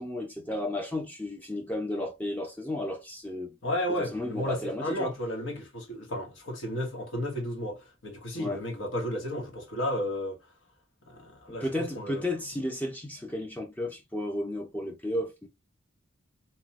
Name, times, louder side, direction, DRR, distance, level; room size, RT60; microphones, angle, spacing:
voice 1, 0.0-3.5 4.0-5.1 8.3-8.6 11.6-15.5, left 1 dB, 10° left, 0.4 m, -33 dB
voice 2, 3.6-10.4 11.1-12.5, equal, 75° left, 1.1 m, -33 dB
3.0 x 2.1 x 2.8 m
head